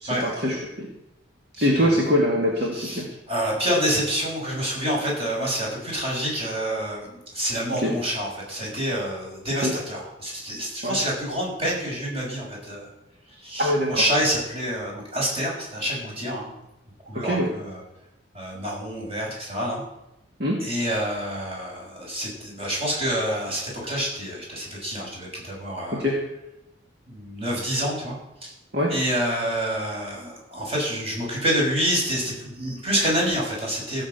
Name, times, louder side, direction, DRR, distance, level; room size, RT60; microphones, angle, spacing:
voice 1, 0.0-0.9 1.6-3.0 7.8-7.9 9.6-9.7 10.8-11.0 13.6-13.9 17.2-17.5 20.4-20.6 26.0-26.1 28.7-28.9, equal, 60° right, -2 dB, 2.2 m, -23 dB
voice 2, 1.6-2.0 2.7-12.9 13.4-16.5 17.1-17.8 18.3-19.8 20.6-26.0 27.1-28.1 28.4-28.5 28.9-34.0, equal, 30° right, -3 dB, 6.1 m, -27 dB
16.5 x 6.7 x 8.1 m, 0.87 s
head